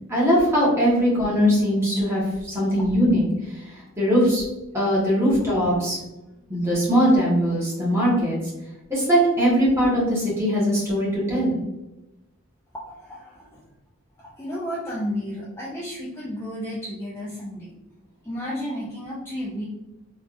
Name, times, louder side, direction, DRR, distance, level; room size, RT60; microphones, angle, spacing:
voice 1, 0.1-3.2 4.0-4.4 4.7-6.0 6.5-8.4 8.9-11.5, equal, 10° right, -7 dB, 1.2 m, -20 dB
voice 2, 12.9-13.6 14.2-17.7 18.2-19.6, equal, 10° left, -6 dB, 0.4 m, -32 dB
3.4 x 3.2 x 2.5 m, 0.99 s
head